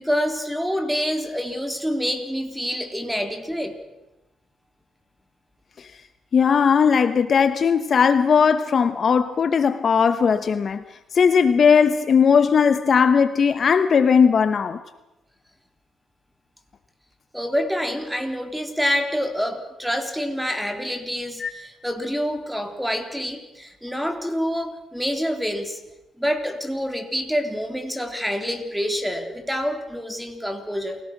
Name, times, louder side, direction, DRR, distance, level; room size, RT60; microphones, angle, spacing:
voice 1, 0.0-3.7 17.3-25.8 26.2-31.0, equal, ahead, 3.4 m, -27 dB
voice 2, 6.3-10.8 11.1-14.8 21.4-21.5, left 6 dB, 50° left, 1.0 m, -18 dB
28.5 x 17.5 x 6.1 m
cardioid pair, 90°, 0 cm